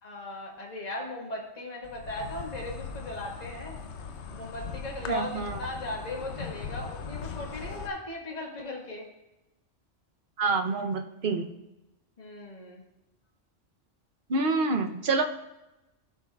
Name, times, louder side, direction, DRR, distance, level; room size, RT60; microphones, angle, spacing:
voice 1, 0.0-3.8 4.3-9.1 12.2-12.8, left 2 dB, 35° left, -2 dB, 1.7 m, -38 dB
Insect, 1.8-7.9, left 5 dB, 65° left, 1.0 m, -40 dB
voice 2, 5.1-5.6 10.4-11.5 14.3-15.2, right 3 dB, 50° right, 5 dB, 0.9 m, -27 dB
16.5 x 5.7 x 2.4 m, 0.97 s
omnidirectional pair, 1.3 m